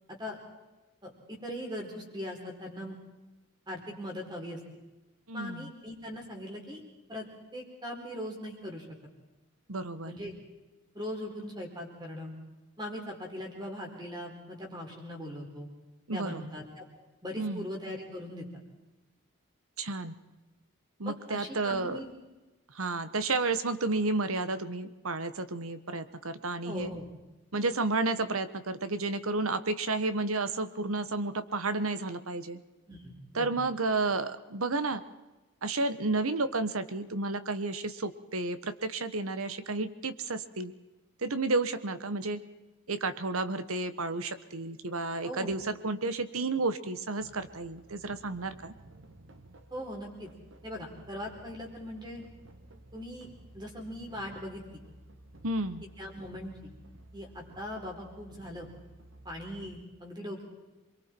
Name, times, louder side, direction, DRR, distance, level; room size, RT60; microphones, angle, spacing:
voice 1, 1.0-2.9 3.7-4.6 5.3-6.8 7.1-7.3 7.5-8.9 10.0-10.3 10.9-12.3 12.8-15.7 16.1-16.9 17.2-18.5 21.0-22.1 26.6-27.1 32.9-33.5 45.2-45.5 49.7-50.3 50.6-52.2 52.9-53.3 53.5-54.8 55.8-56.7 57.1-58.7 59.2-60.4, left 1 dB, 20° right, 1 dB, 4.2 m, -40 dB
voice 2, 5.3-5.7 9.7-10.2 16.1-16.4 17.4-17.7 19.8-20.2 21.0-22.0 22.7-26.9 27.5-32.6 33.3-35.0 35.6-40.7 41.2-42.4 42.9-48.7 55.4-55.8, right 3 dB, 80° right, 11 dB, 1.3 m, -31 dB
sound 1, 47.2-59.8, right 1 dB, 65° right, 1.7 m, -54 dB
28.0 x 22.5 x 4.6 m, 1.1 s
head